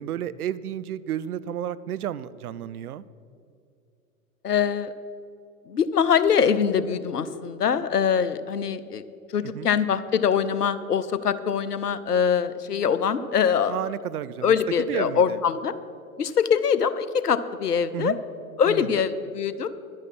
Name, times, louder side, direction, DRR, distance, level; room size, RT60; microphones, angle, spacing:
voice 1, 0.0-3.0 9.5-9.7 13.7-15.4 17.9-18.2 18.6-19.1, right 10 dB, 70° right, 17 dB, 0.6 m, -32 dB
voice 2, 4.4-4.9 5.7-9.0 9.3-13.7 14.4-15.7 16.2-18.1 18.6-19.7, left 7 dB, 85° left, 14 dB, 0.7 m, -23 dB
11.0 x 9.8 x 5.6 m, 2.6 s
figure-of-eight pair, 100°, 45 cm